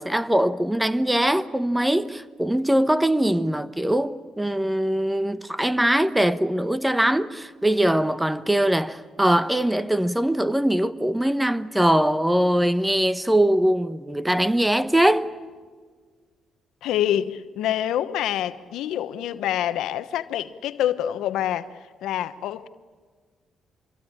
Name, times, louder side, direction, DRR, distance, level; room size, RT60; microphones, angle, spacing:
voice 1, 0.0-15.3, right 1 dB, 5° right, 1.1 m, -22 dB
voice 2, 16.8-21.7 22.0-22.7, left 11 dB, 85° left, 1.1 m, -26 dB
26.5 x 23.0 x 8.8 m
cardioid pair, 90°, 0 cm